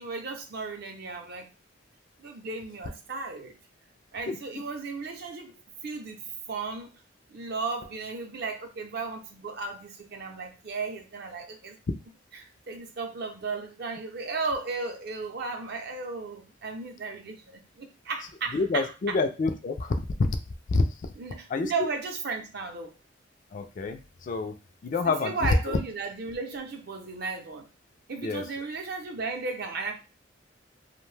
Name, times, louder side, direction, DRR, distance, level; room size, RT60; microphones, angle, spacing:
voice 1, 0.0-1.5 2.2-3.6 4.1-5.5 5.8-6.2 6.5-6.9 7.3-11.8 12.4-18.9 21.2-23.0 25.0-27.7 28.1-29.9, right 4 dB, 55° right, 4 dB, 0.6 m, -35 dB
voice 2, 18.5-20.3 20.7-20.8 21.5-21.9 23.5-24.5 24.8-25.8 28.2-28.4, left 3 dB, 45° left, 8 dB, 0.3 m, -27 dB
2.6 x 2.1 x 3.2 m, 0.31 s
head